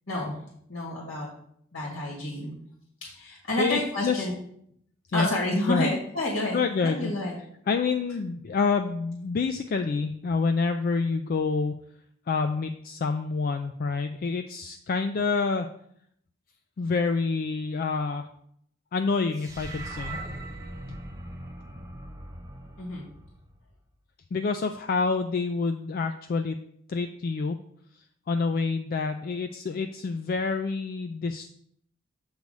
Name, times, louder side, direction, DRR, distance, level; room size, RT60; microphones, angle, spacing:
voice 1, 0.7-1.3 1.7-2.6 3.0-4.3 5.1-7.4 22.8-23.1, left 1 dB, 70° left, -3 dB, 1.9 m, -29 dB
voice 2, 3.6-4.3 5.1-5.3 5.7-5.9 6.5-7.1 7.7-11.8 12.3-15.7 16.8-18.3 18.9-20.2 24.3-26.6 26.9-27.6 28.3-31.5, left 4 dB, 45° left, 7 dB, 0.3 m, -27 dB
sound 1, 19.4-23.7, right 2 dB, 15° right, 0.7 m, -40 dB
8.2 x 3.2 x 5.2 m, 0.69 s
head